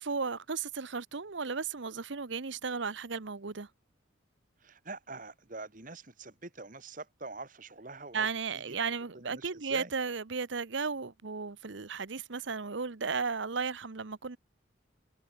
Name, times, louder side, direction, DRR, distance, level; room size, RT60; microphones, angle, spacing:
voice 1, 0.0-3.7 8.1-14.4, right 5 dB, 65° right, 0.9 m, -35 dB
voice 2, 4.6-8.8 9.1-9.9, right 3 dB, 40° right, 2.1 m, -45 dB
head